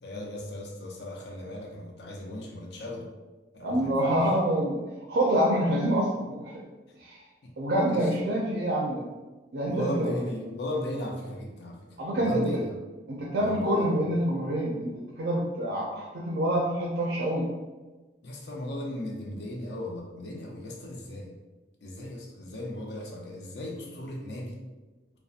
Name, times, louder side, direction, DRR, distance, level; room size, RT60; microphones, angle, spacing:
voice 1, 0.0-3.1 3.5-4.2 7.4-7.5 7.9-8.1 9.6-12.7 13.4-14.0 18.2-21.4 21.8-24.6, left 1 dB, 70° left, 0 dB, 0.5 m, -36 dB
voice 2, 3.6-4.8 5.1-6.6 7.0-7.2 7.6-9.0 9.5-10.1 12.0-12.6 13.1-17.5, right 1 dB, 80° right, -3 dB, 0.4 m, -26 dB
2.6 x 2.1 x 2.4 m, 1.2 s
head